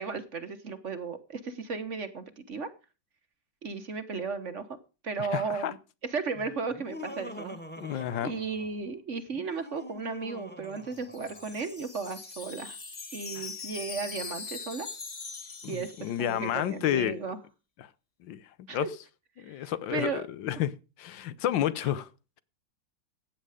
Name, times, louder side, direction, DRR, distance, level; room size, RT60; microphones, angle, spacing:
voice 1, 0.0-2.7 3.6-4.7 5.0-5.8 6.1-7.6 7.9-12.8 13.1-14.9 15.7-17.4 18.7-18.9 19.4-20.3, right 4 dB, 45° right, 1.3 m, -35 dB
voice 2, 5.2-5.7 7.8-8.3 13.3-13.5 15.6-17.2 17.8-17.9 18.2-18.9 19.4-20.7 21.0-22.1, left 11 dB, 85° left, 1.6 m, -31 dB
Laughter, 6.7-8.8 9.3-11.7, left 1 dB, 5° left, 1.6 m, -45 dB
Wind chime, 10.6-16.6, left 4 dB, 25° left, 0.8 m, -42 dB
15.0 x 9.3 x 4.9 m
omnidirectional pair, 2.0 m